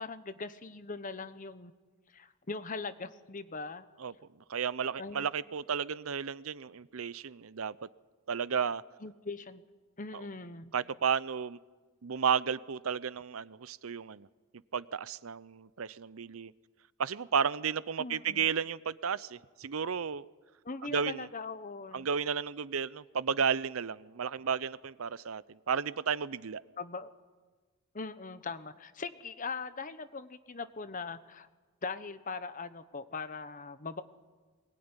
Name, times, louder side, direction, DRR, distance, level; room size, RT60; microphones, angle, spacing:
voice 1, 0.0-1.7 2.1-3.9 5.0-5.3 9.0-9.6 10.0-10.7 18.0-18.5 20.6-22.1 26.8-27.1 27.9-31.5 31.8-34.0, left 4 dB, 40° left, 12 dB, 1.1 m, -40 dB
voice 2, 4.5-7.9 8.3-8.8 10.1-10.2 10.7-11.6 12.0-14.3 14.7-16.5 17.0-20.2 20.8-21.3 21.9-26.6, right 6 dB, 85° right, 18 dB, 0.7 m, -33 dB
22.5 x 20.0 x 9.8 m, 1.4 s
head